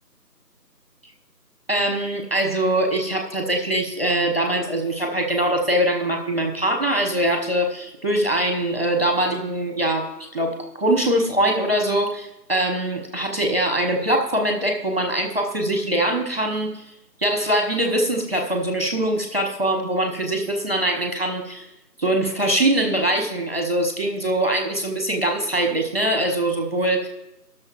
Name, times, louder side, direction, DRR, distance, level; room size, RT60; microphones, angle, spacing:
voice 1, 1.7-16.8 17.2-21.7 22.0-27.1, right 1 dB, 35° right, 2 dB, 1.1 m, -23 dB
19.0 x 6.7 x 3.0 m, 0.93 s
figure-of-eight pair, 180°, 50 cm